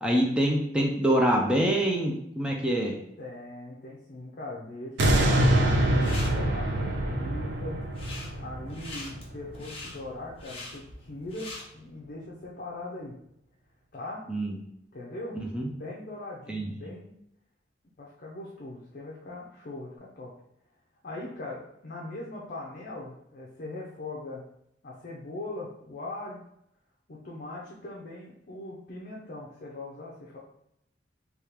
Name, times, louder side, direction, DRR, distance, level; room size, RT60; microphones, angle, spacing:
voice 1, 0.0-3.0 14.3-14.6 15.3-15.7 16.5-16.7, right 1 dB, 5° right, 0 dB, 0.4 m, -25 dB
voice 2, 3.2-7.8 8.4-13.2 13.9-14.2 14.9-15.4 15.7-17.1 18.0-20.3 21.0-24.5 24.8-26.4 27.1-30.4, left 2 dB, 50° left, -4 dB, 0.6 m, -40 dB
sound 1, 5.0-10.1 10.6-10.7, right 1 dB, 75° right, 0.5 m, -25 dB
sound 2, 5.7-6.3 7.8-8.3 8.7-11.6, left 2 dB, 35° left, 1.0 m, -42 dB
3.4 x 2.3 x 2.9 m, 0.76 s
head